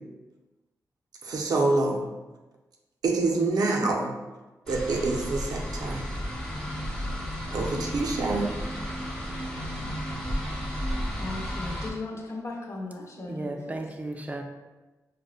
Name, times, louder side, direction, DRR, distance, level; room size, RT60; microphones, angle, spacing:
voice 1, 1.2-2.0 3.0-4.1 4.7-6.0 7.5-8.5, right 3 dB, 85° right, 1 dB, 0.5 m, -26 dB
sound 1, 4.7-11.9, equal, 10° left, 0.8 m, -33 dB
voice 2, 11.2-13.8, left 2 dB, 45° left, 0 dB, 0.6 m, -37 dB
voice 3, 13.2-14.4, right 2 dB, 25° right, 3 dB, 0.4 m, -35 dB
4.7 x 2.1 x 2.4 m, 1.2 s
cardioid pair, 85°, 6 cm